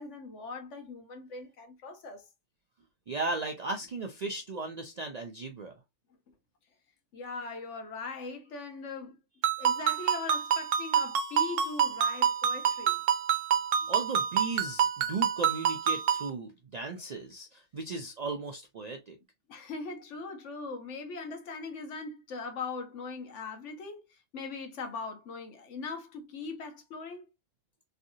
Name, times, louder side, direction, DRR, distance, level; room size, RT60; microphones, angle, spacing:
voice 1, 0.0-2.3 7.1-9.2 9.6-13.0 19.5-27.3, left 4 dB, 75° left, 1.1 m, -40 dB
voice 2, 3.1-5.7 13.9-19.2, right 3 dB, 60° right, 0.4 m, -36 dB
Ringtone, 9.4-16.3, right 8 dB, 85° right, 1.0 m, -27 dB
3.2 x 2.7 x 2.6 m
omnidirectional pair, 1.3 m